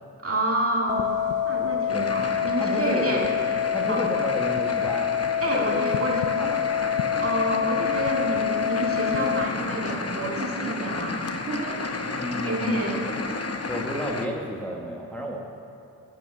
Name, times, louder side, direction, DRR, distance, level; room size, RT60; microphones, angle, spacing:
voice 1, 0.2-1.2 1.5-3.2 3.9-4.1 5.4-6.2 7.2-13.1, right 1 dB, 35° right, -2 dB, 2.1 m, -29 dB
sound 1, 0.9-9.5, left 9 dB, 70° left, 0.5 m, -26 dB
sound 2, 1.9-14.3, left 3 dB, 40° left, 0.8 m, -33 dB
voice 2, 2.6-3.3 3.7-5.1 5.5-5.8 6.4-6.7 12.0-12.9 13.7-15.4, equal, 5° left, -1 dB, 1.2 m, -31 dB
11.0 x 6.9 x 6.2 m, 2.6 s
cardioid pair, 45°, 37 cm